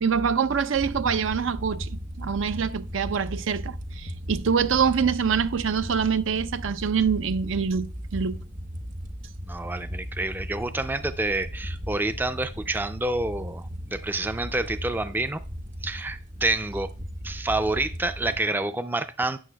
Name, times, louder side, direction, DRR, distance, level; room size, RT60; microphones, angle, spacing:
voice 1, 0.0-8.4, right 6 dB, 80° right, 0.5 m, -25 dB
sound 1, 0.7-18.4, equal, 40° right, 0.9 m, -37 dB
voice 2, 9.4-15.4 15.8-16.9 17.2-19.4, right 2 dB, 10° right, 0.3 m, -28 dB
12.5 x 9.4 x 2.2 m
head